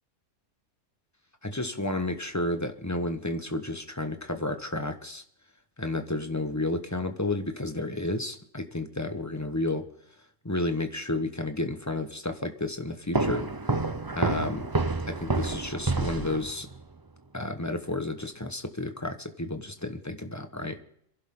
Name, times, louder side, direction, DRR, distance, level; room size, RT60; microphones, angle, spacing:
voice 1, 1.4-5.2 5.8-9.8 10.4-13.5 14.1-14.7 15.1-16.7 17.3-20.8, left 2 dB, 15° left, 7 dB, 1.2 m, -31 dB
sound 1, 13.1-16.8, right 3 dB, 20° right, 0.6 m, -28 dB
26.5 x 11.5 x 3.8 m, 0.70 s
omnidirectional pair, 1.4 m